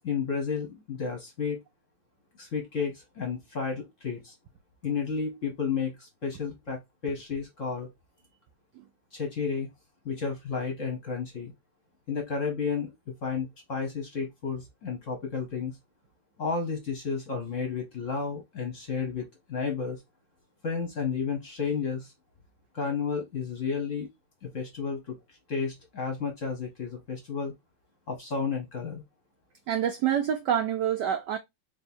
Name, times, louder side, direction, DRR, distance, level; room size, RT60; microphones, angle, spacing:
voice 1, 0.0-1.6 2.4-4.3 4.8-7.9 9.1-9.7 10.0-11.5 12.1-15.7 16.4-20.0 20.6-22.1 22.7-24.1 24.4-25.2 25.5-27.5 28.1-29.0, left 5 dB, 50° left, 1.0 m, -32 dB
voice 2, 29.7-31.4, right 9 dB, 85° right, 0.9 m, -27 dB
3.4 x 3.2 x 4.2 m
omnidirectional pair, 2.4 m